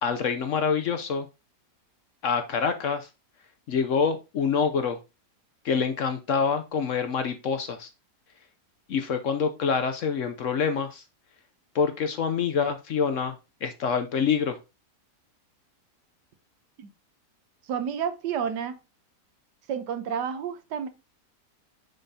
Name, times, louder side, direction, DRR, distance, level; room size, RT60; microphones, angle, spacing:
voice 1, 0.0-1.3 2.2-3.1 3.7-5.0 5.6-7.9 8.9-11.0 11.7-13.4 13.6-14.6, left 6 dB, 60° left, 0.9 m, -26 dB
voice 2, 17.6-18.8 19.7-20.9, right 7 dB, 90° right, 1.4 m, -30 dB
7.0 x 5.6 x 2.7 m
omnidirectional pair, 1.8 m